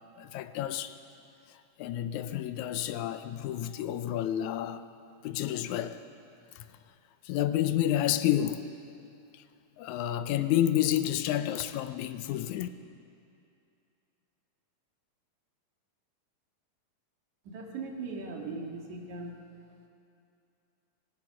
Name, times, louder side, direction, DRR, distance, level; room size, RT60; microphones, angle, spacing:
voice 1, 0.2-1.0 1.8-4.9 5.2-6.0 6.6-6.7 7.3-8.7 9.8-12.7, left 12 dB, 75° left, 1.7 m, -30 dB
voice 2, 17.5-19.4, right 3 dB, 60° right, 3.6 m, -39 dB
26.5 x 17.5 x 6.2 m
omnidirectional pair, 4.1 m